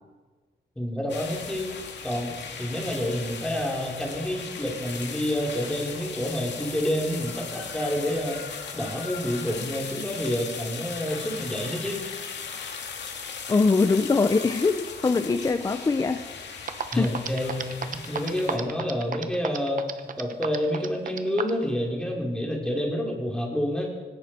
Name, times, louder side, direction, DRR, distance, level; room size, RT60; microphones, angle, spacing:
voice 1, 0.8-1.8 2.0-8.4 8.7-12.0 16.9-23.9, left 1 dB, 5° left, -1 dB, 3.0 m, -28 dB
sound 1, 1.1-18.6, left 6 dB, 80° left, 2.1 m, -38 dB
voice 2, 13.5-16.2 16.6-17.2, left 4 dB, 20° left, 10 dB, 0.6 m, -23 dB
sound 2, 16.7-21.6, right 7 dB, 50° right, 0.9 m, -32 dB
19.0 x 17.5 x 4.3 m, 1.4 s
wide cardioid pair, 175°, 18 cm